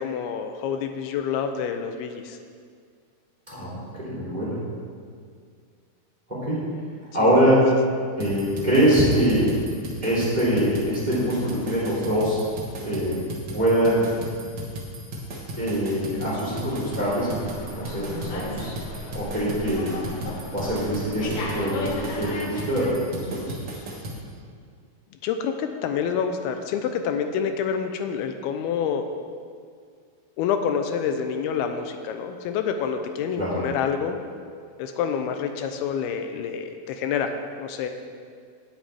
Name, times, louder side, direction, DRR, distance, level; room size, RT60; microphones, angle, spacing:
voice 1, 0.0-2.4 7.2-7.3 25.2-29.0 30.4-34.2 34.8-37.9, left 7 dB, 85° left, 6 dB, 2.6 m, -27 dB
voice 2, 3.5-4.6 6.3-6.7 7.1-7.7 8.2-9.6 10.0-12.4 12.8-14.1 15.6-18.7 19.1-20.0 20.5-23.8 33.4-33.6, equal, 10° right, -8 dB, 2.8 m, -23 dB
sound 1, 8.2-24.2, equal, 50° right, 1.3 m, -35 dB
Slam, 16.8-22.9, left 2 dB, 65° left, 1.4 m, -36 dB
18.0 x 7.2 x 3.4 m, 2.1 s
omnidirectional pair, 4.4 m